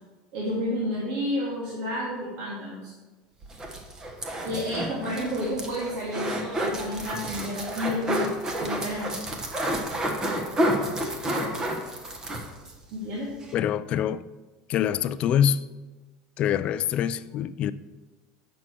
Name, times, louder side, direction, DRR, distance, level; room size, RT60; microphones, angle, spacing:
voice 1, 0.3-2.9 4.4-8.3 8.5-9.2 12.9-13.3, left 1 dB, 65° right, 2.3 m, -30 dB
sound 1, 3.4-12.8 13.1-13.2 13.4-13.5, right 1 dB, 20° right, 1.2 m, -30 dB
voice 2, 13.5-14.2 14.7-15.7 16.4-17.7, left 9 dB, 40° left, 0.3 m, -25 dB
8.5 x 6.2 x 4.5 m
supercardioid pair, 135°, 3 cm